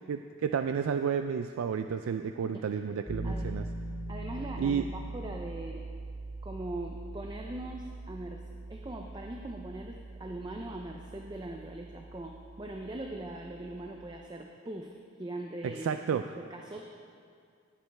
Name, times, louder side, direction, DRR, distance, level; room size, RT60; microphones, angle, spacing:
voice 1, 0.1-3.7 4.6-4.8 15.6-16.2, right 7 dB, 75° right, 8 dB, 0.3 m, -31 dB
Piano, 3.1-13.9, right 2 dB, ahead, 2.9 m, -42 dB
voice 2, 4.1-5.9 6.4-8.4 8.7-16.8, right 1 dB, 20° right, 2 dB, 0.5 m, -41 dB
19.0 x 8.3 x 3.4 m, 2.3 s
head